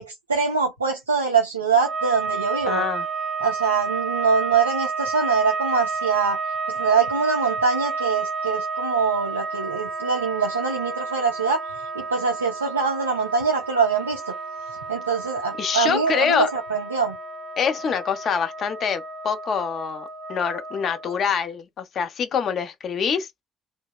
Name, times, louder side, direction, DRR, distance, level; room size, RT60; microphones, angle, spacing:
voice 1, 0.0-2.8 3.4-6.4 6.7-11.6 11.9-14.3 14.9-17.2, right 5 dB, 90° right, 0.3 m, -23 dB
sound 1, 1.7-21.4, right 4 dB, 35° right, 0.7 m, -31 dB
voice 2, 2.7-3.1 15.6-16.5 17.6-23.3, left 7 dB, 50° left, 0.5 m, -25 dB
2.8 x 2.0 x 2.3 m
figure-of-eight pair, 50°, 0 cm